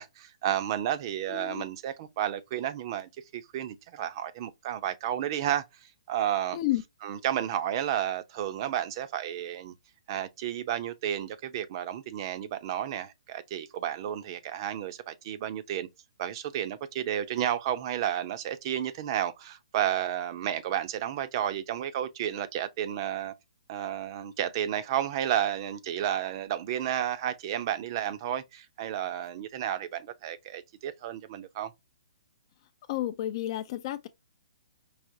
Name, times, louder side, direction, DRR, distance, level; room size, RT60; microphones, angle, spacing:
voice 1, 0.0-5.6 6.1-6.6 7.0-9.7 10.1-15.9 16.2-23.4 23.7-31.7, right 11 dB, 40° right, 0.7 m, -32 dB
voice 2, 1.3-1.6 6.5-6.8 32.9-34.1, left 14 dB, 40° left, 0.4 m, -31 dB
4.9 x 2.8 x 2.7 m
hypercardioid pair, 135°, 4 cm